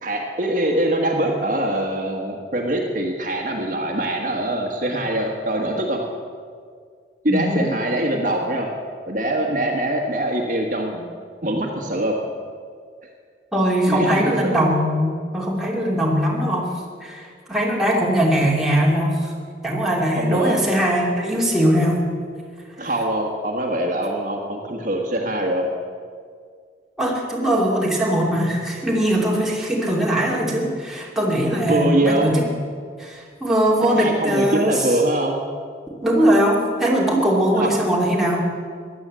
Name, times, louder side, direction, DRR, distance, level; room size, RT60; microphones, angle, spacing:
voice 1, 0.0-6.0 7.2-8.7 9.1-11.1 11.4-12.1 13.9-14.6 20.1-20.6 22.8-25.7 31.6-32.3 34.0-35.4 37.5-37.7, right 1 dB, 45° right, 1 dB, 1.5 m, -23 dB
voice 2, 7.3-7.7 13.5-16.7 17.0-19.3 19.6-22.0 22.8-22.9 27.0-32.5 33.0-34.9 36.0-38.4, equal, ahead, -4 dB, 2.7 m, -20 dB
16.0 x 11.0 x 7.6 m, 2.1 s
head